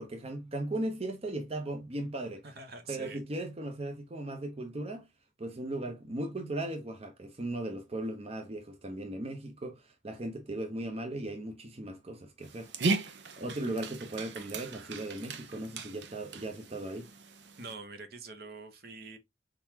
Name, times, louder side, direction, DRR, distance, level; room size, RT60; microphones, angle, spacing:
voice 1, 0.0-2.5 2.9-5.1 5.4-12.7 13.4-17.1, right 1 dB, 35° right, 0.8 m, -37 dB
voice 2, 2.4-3.2 17.6-19.2, right 3 dB, 60° right, 1.0 m, -45 dB
Dog, 12.4-17.7, right 3 dB, 80° right, 0.7 m, -37 dB
4.5 x 4.0 x 2.8 m
head